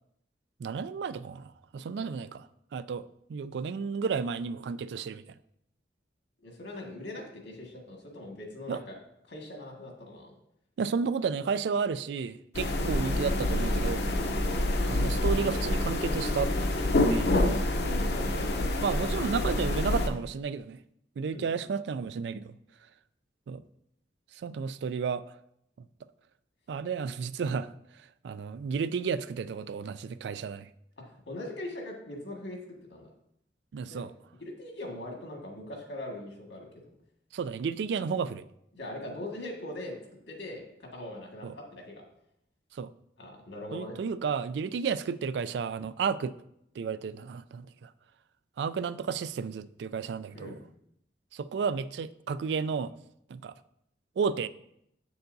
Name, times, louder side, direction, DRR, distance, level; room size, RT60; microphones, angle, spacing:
voice 1, 0.6-2.5 2.7-5.2 8.7-8.8 10.8-14.1 14.9-16.5 17.1-17.3 18.8-20.8 21.2-22.5 23.5-23.6 24.4-25.2 25.8-25.9 26.7-27.7 28.2-30.7 33.7-34.1 37.3-38.4 41.4-41.5 42.7-42.9 43.7-46.3 46.8-47.9 48.6-50.5 51.3-52.9 53.3-53.5 54.2-54.5, right 5 dB, 70° right, 0.3 m, -32 dB
voice 2, 6.4-9.0 9.3-10.3 16.8-18.6 21.3-21.4 31.3-32.6 32.9-33.1 33.9-34.1 34.4-36.8 38.7-40.0 40.3-42.0 43.2-44.0 50.3-50.6, left 1 dB, 80° left, 1.7 m, -41 dB
sound 1, 12.5-20.1, left 1 dB, 65° left, 0.7 m, -27 dB
7.7 x 6.9 x 2.6 m
head